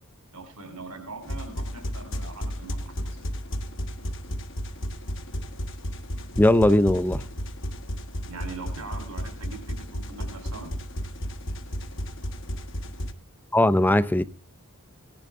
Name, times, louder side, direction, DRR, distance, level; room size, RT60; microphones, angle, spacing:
voice 1, 0.3-3.2 8.3-9.6 9.9-10.7, right 3 dB, 85° right, 3.7 m, -41 dB
sound 1, 1.2-13.1, equal, 60° left, 1.3 m, -33 dB
voice 2, 6.4-7.2 13.5-14.2, left 1 dB, 10° left, 0.5 m, -19 dB
17.5 x 10.5 x 3.6 m
head